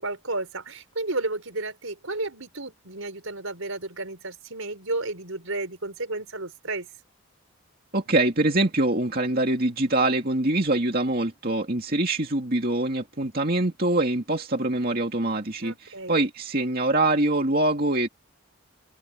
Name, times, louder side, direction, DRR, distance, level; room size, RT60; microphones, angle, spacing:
voice 1, 0.0-6.9 15.6-16.2, right 2 dB, 75° right, 4.9 m, -32 dB
voice 2, 7.9-18.1, right 2 dB, 45° right, 2.4 m, -24 dB
open air
head